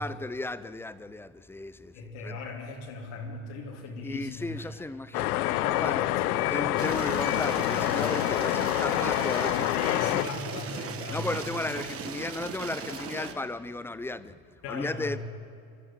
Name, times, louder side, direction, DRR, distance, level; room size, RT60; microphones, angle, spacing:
voice 1, 0.0-1.9 2.2-2.4 4.0-6.1 6.5-9.7 11.1-14.3 14.7-15.2, left 2 dB, 5° left, 0.5 m, -35 dB
voice 2, 1.9-4.8 5.5-7.2 7.7-7.8 8.4-8.6 9.7-12.0 12.9-13.4 14.6-15.2, left 3 dB, 70° left, 3.7 m, -39 dB
sound 1, 5.1-10.2, left 16 dB, 90° left, 0.7 m, -27 dB
sound 2, 6.8-13.3, right 7 dB, 30° right, 1.8 m, -38 dB
26.5 x 12.0 x 9.1 m
supercardioid pair, 110°, 43 cm